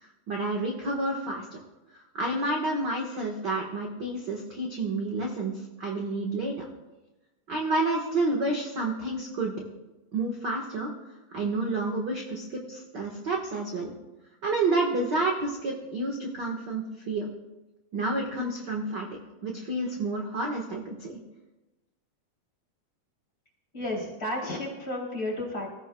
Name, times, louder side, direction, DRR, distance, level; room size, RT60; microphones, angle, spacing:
voice 1, 0.3-1.5 2.1-6.7 7.5-9.5 10.1-10.9 11.3-13.9 14.4-17.2 17.9-21.2, right 2 dB, 45° right, 0 dB, 1.5 m, -29 dB
voice 2, 23.7-25.7, left 1 dB, 25° left, -3 dB, 4.0 m, -32 dB
25.5 x 15.0 x 2.3 m, 1.1 s
omnidirectional pair, 3.8 m